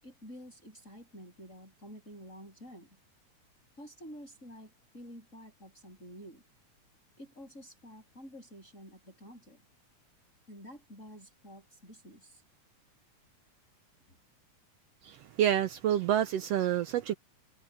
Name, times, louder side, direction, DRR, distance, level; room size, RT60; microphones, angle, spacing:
voice 1, 0.0-2.9 3.8-6.4 7.2-9.6 10.5-12.4 14.1-14.2, equal, 25° left, 8.2 m, -50 dB
voice 2, 15.0-17.1, right 11 dB, 70° right, 1.6 m, -28 dB
omnidirectional pair, 3.4 m